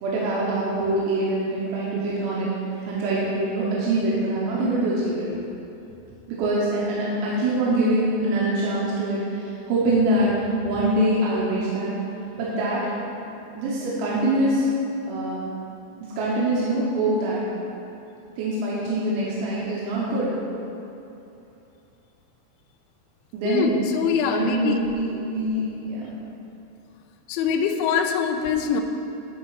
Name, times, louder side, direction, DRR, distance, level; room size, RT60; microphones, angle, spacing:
voice 1, 0.0-2.5 2.9-5.2 6.3-10.3 10.6-11.9 12.3-12.8 13.6-14.7 15.1-15.4 16.2-17.4 18.4-20.3 23.3-23.8 24.3-26.2, right 1 dB, 90° right, -6 dB, 3.8 m, -24 dB
voice 2, 23.5-24.8 27.3-28.8, left 6 dB, 85° left, 5 dB, 2.6 m, -23 dB
11.5 x 4.2 x 4.8 m, 2.8 s
omnidirectional pair, 5.9 m